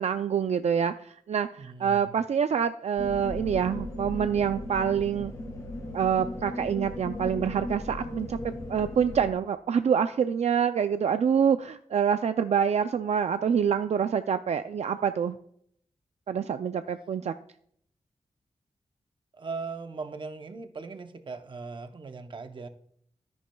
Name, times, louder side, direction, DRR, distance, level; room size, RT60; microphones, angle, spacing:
voice 1, 0.0-5.3 5.9-8.4 8.7-15.4 16.3-17.3, right 7 dB, 65° right, 0.4 m, -26 dB
voice 2, 1.6-2.2 19.3-22.7, right 4 dB, 40° right, 0.7 m, -39 dB
sound 1, 3.0-9.3, left 1 dB, 30° left, 2.2 m, -37 dB
13.0 x 10.5 x 2.3 m
wide cardioid pair, 170°, 12 cm